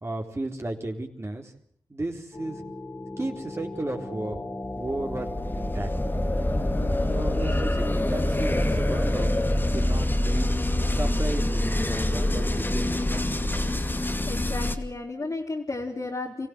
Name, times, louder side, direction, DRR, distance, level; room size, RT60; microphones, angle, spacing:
voice 1, 0.0-1.5 1.9-2.6 3.2-4.4 4.8-5.9 7.1-10.5 10.9-13.6, right 2 dB, 30° right, 2 dB, 3.8 m, -34 dB
sound 1, 2.3-14.8, left 1 dB, 25° left, 2.5 m, -26 dB
voice 2, 14.3-16.5, left 3 dB, 40° left, -4 dB, 3.8 m, -33 dB
24.5 x 15.5 x 8.1 m, 0.62 s
supercardioid pair, 40°, 9 cm